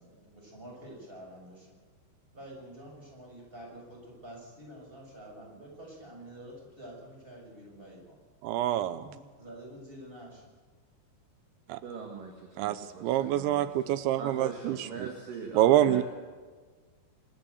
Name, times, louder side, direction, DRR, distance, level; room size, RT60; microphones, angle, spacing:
voice 1, 0.0-1.7 2.3-8.2 8.9-10.4, right 1 dB, 10° right, -1 dB, 6.7 m, -48 dB
voice 2, 8.4-9.0 11.7-11.8 12.6-15.1 15.6-16.0, right 12 dB, 85° right, 13 dB, 3.1 m, -26 dB
voice 3, 11.8-16.0, right 5 dB, 55° right, 2 dB, 3.2 m, -41 dB
26.0 x 13.0 x 8.1 m, 1.4 s
omnidirectional pair, 5.1 m